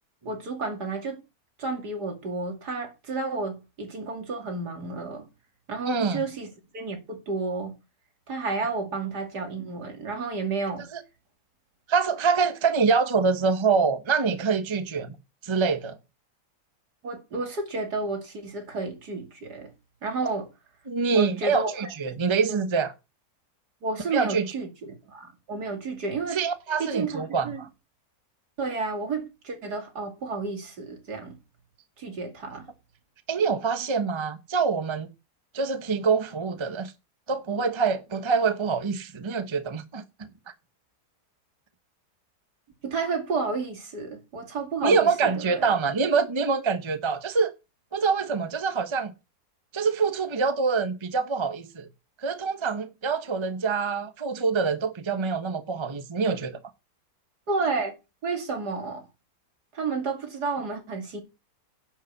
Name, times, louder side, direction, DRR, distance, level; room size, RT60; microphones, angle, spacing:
voice 1, 0.2-1.2 1.6-5.3 5.7-7.8 8.3-10.9 17.0-19.7 20.0-20.5 21.1-22.2 22.5-22.6 23.8-26.4 26.8-27.6 28.6-31.4 32.0-32.7 42.8-45.7 57.5-57.9 58.2-59.1 59.7-61.2, right 3 dB, 75° right, 3.0 m, -31 dB
voice 2, 5.8-6.3 10.9-11.0 11.9-15.2 15.4-16.0 20.9-22.9 24.1-24.5 26.3-27.5 33.3-35.1 35.5-36.9 37.3-40.0 44.8-47.5 47.9-49.1 49.7-51.9 52.2-56.6, right 5 dB, 20° right, 0.9 m, -25 dB
10.5 x 5.4 x 7.0 m
omnidirectional pair, 1.7 m